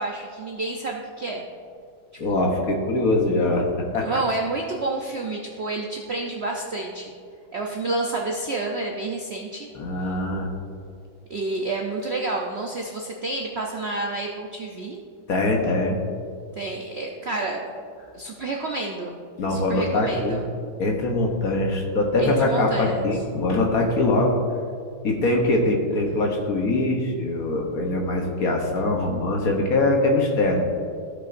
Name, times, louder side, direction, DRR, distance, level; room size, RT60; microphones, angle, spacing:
voice 1, 0.0-1.4 2.3-2.5 4.0-7.1 7.5-9.7 11.3-15.0 16.6-17.6 18.1-19.2 19.5-20.4 22.2-23.1, right 2 dB, 90° right, 0 dB, 0.5 m, -29 dB
voice 2, 2.2-3.7 3.9-4.1 9.7-10.5 15.3-16.0 19.4-20.4 20.8-24.4 25.0-30.7, left 2 dB, 55° left, 1 dB, 1.3 m, -22 dB
15.5 x 5.7 x 2.6 m, 2.2 s
omnidirectional pair, 2.1 m